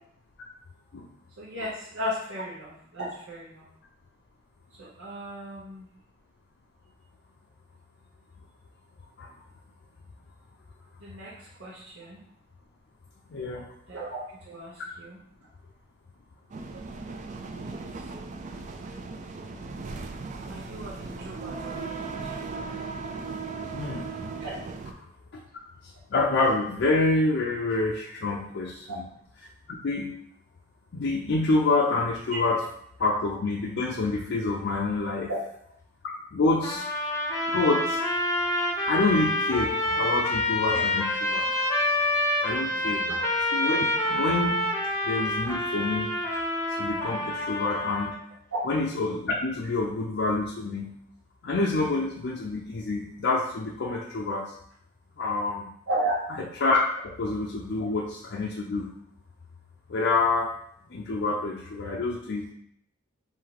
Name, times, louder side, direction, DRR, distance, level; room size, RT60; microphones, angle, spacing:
voice 1, 1.4-3.6 4.8-5.9 11.0-12.2 13.9-15.2 17.5-17.9 20.5-22.2 22.5-22.6 24.4-24.6 28.9-29.0 35.3-35.4 40.7-40.8 42.7-43.2 47.7-47.8 48.5-48.6 55.9-56.1, right 1 dB, 90° right, -8 dB, 1.0 m, -35 dB
voice 2, 13.3-13.7 23.7-24.1 26.1-29.0 29.8-30.1 30.9-32.6 33.0-35.3 36.3-36.9 37.5-38.0 38.9-41.5 42.4-43.1 43.5-44.6 45.1-46.1 46.8-48.2 48.7-51.0 51.4-54.5 55.2-55.7 56.6-58.9 59.9-60.5 60.9-62.5, left 3 dB, 60° left, -1 dB, 0.5 m, -27 dB
sound 1, 16.5-24.9, right 4 dB, 40° right, 0.4 m, -37 dB
sound 2, 36.6-48.2, left 1 dB, 15° left, 0.7 m, -27 dB
3.6 x 2.7 x 4.7 m, 0.69 s
head